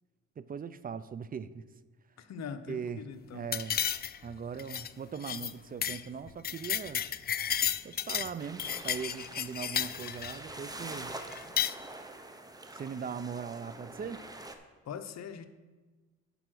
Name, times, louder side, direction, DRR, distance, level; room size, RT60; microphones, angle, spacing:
voice 1, 0.4-1.7 2.7-3.0 3.3-3.8 4.2-7.1 7.8-11.1 12.7-14.2, right 6 dB, 30° right, 14 dB, 0.5 m, -40 dB
voice 2, 2.2-3.5 14.8-15.5, left 7 dB, 60° left, 9 dB, 0.8 m, -42 dB
sound 1, 3.5-4.3 4.6-4.9 5.2-5.5 5.8-6.0 6.3-8.3 8.6-10.4 11.3-11.7, left 9 dB, 35° left, 0.4 m, -32 dB
sound 2, 8.4-14.6, right 2 dB, 10° right, 0.9 m, -45 dB
11.0 x 4.7 x 6.2 m, 1.3 s
cardioid pair, 90°, 30 cm